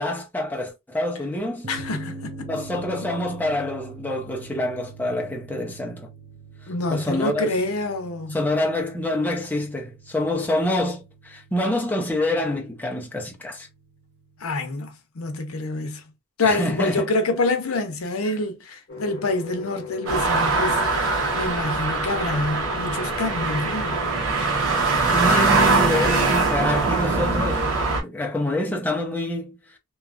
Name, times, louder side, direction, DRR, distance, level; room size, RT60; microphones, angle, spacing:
voice 1, 0.0-1.7 2.5-6.1 6.9-7.5 8.3-13.7 16.4-17.1 24.6-24.7 25.1-27.7 28.0-29.6, left 1 dB, 10° left, 0.6 m, -26 dB
sound 1, 1.6-14.6, right 3 dB, 50° right, 0.6 m, -44 dB
voice 2, 1.7-2.5 6.7-8.4 14.4-16.0 16.4-24.0, left 2 dB, 80° left, 0.7 m, -27 dB
sound 2, 18.9-24.2, left 5 dB, 50° left, 0.8 m, -37 dB
sound 3, 20.1-28.0, right 3 dB, 70° right, 1.0 m, -22 dB
2.9 x 2.3 x 2.4 m
head